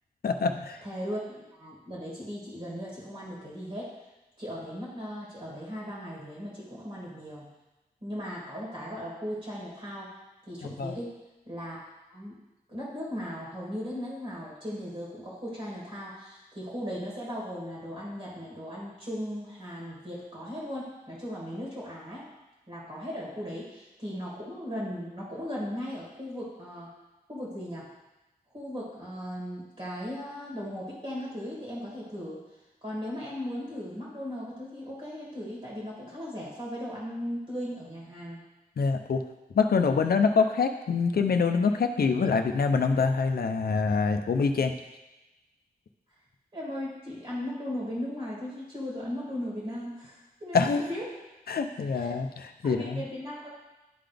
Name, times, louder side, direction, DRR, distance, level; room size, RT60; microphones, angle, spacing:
voice 1, 0.2-0.8 10.6-11.0 38.8-39.2 39.6-44.7 50.5-50.8 51.5-53.0, left 5 dB, 75° left, 6 dB, 0.5 m, -25 dB
voice 2, 0.8-3.9 4.4-7.5 8.0-10.1 10.5-11.1 11.5-11.8 12.1-12.4 12.7-22.3 22.7-26.9 27.3-27.9 28.5-32.4 32.8-38.4 46.5-51.0 51.9-52.1 52.6-53.5, equal, 40° right, -6 dB, 2.3 m, -37 dB
11.0 x 3.9 x 3.4 m, 1.0 s
wide cardioid pair, 95°, 16 cm